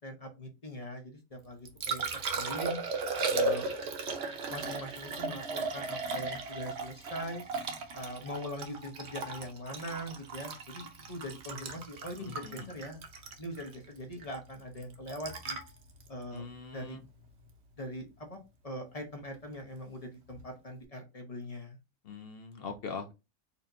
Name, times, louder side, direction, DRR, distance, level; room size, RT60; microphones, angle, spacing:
voice 1, 0.0-2.8 3.3-3.7 4.5-7.4 7.9-13.0 13.4-15.6 16.1-16.4 16.7-17.0 17.8-18.4 18.6-21.8, equal, 30° left, 3 dB, 0.8 m, -41 dB
Liquid, 1.4-17.5 20.3-20.4, right 3 dB, 55° right, 0.9 m, -36 dB
voice 2, 12.2-12.7 16.3-17.0 22.0-23.1, left 5 dB, 65° left, 6 dB, 0.6 m, -42 dB
4.3 x 2.9 x 2.5 m, 0.26 s
omnidirectional pair, 1.5 m